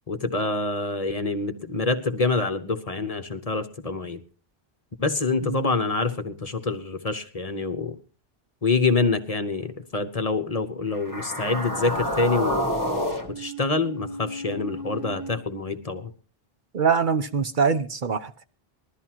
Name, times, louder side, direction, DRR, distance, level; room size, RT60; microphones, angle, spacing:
voice 1, 0.1-4.2 5.0-7.9 8.6-12.8 13.3-16.1, left 3 dB, 40° left, 1.1 m, -26 dB
sound 1, 10.9-15.3, equal, 20° right, 1.8 m, -30 dB
voice 2, 16.7-18.3, right 6 dB, 55° right, 0.9 m, -23 dB
21.0 x 13.0 x 2.9 m
omnidirectional pair, 1.0 m